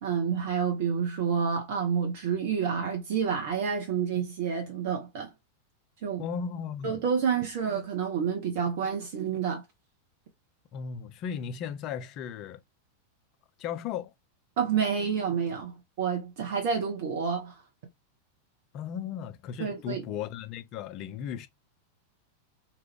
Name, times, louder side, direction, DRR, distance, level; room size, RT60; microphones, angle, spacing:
voice 1, 0.0-5.3 6.0-6.2 6.8-9.6 14.6-17.6 19.6-20.0, right 7 dB, 50° right, 0.7 m, -29 dB
voice 2, 6.2-7.0 10.7-12.6 13.6-14.1 18.7-21.5, left 8 dB, 40° left, 0.4 m, -36 dB
3.0 x 2.4 x 3.2 m
figure-of-eight pair, 90°, 0 cm